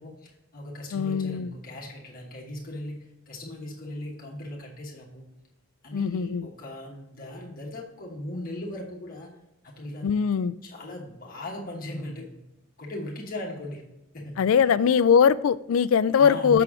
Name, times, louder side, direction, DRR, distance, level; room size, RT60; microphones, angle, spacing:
voice 1, 0.0-5.3 5.8-9.3 9.6-12.3 12.8-13.8 14.1-14.4 14.6-14.7 16.1-16.6, left 1 dB, 40° left, -2 dB, 1.2 m, -38 dB
voice 2, 0.9-1.5 5.9-6.5 10.0-10.5 14.4-16.6, left 7 dB, 70° left, 17 dB, 0.3 m, -21 dB
6.9 x 5.9 x 3.6 m, 0.93 s
head